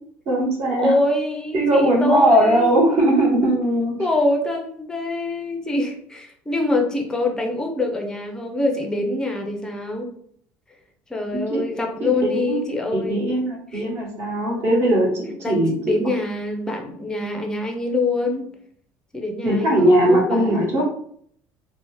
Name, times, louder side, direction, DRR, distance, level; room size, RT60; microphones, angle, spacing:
voice 1, 0.2-0.9 1.5-3.9 11.3-11.6 12.0-12.6 12.9-15.7 19.4-20.8, right 1 dB, 45° right, -4 dB, 1.3 m, -19 dB
voice 2, 0.8-2.7 4.0-10.1 11.1-13.4 13.7-13.9 15.4-15.6 15.8-18.5 19.1-20.8, left 2 dB, 10° left, 3 dB, 0.5 m, -25 dB
2.8 x 2.0 x 3.1 m, 0.64 s
cardioid pair, 130°, 6 cm